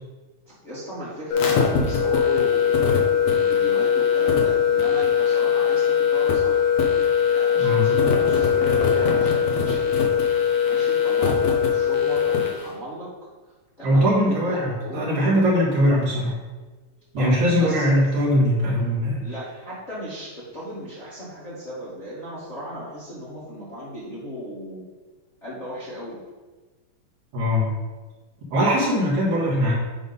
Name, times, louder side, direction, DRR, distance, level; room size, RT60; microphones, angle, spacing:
voice 1, 0.5-6.7 7.3-10.1 10.6-13.3 13.8-15.1 17.2-17.8 19.2-24.8 25.4-26.2, equal, 25° left, -10 dB, 1.9 m, -36 dB
sound 1, 1.3-12.6, left 7 dB, 65° left, 2.0 m, -20 dB
voice 2, 7.6-7.9 13.8-16.4 17.1-19.2 27.3-27.7 28.5-29.7, equal, 55° right, -6 dB, 2.8 m, -21 dB
9.8 x 3.7 x 5.3 m, 1.3 s
omnidirectional pair, 4.1 m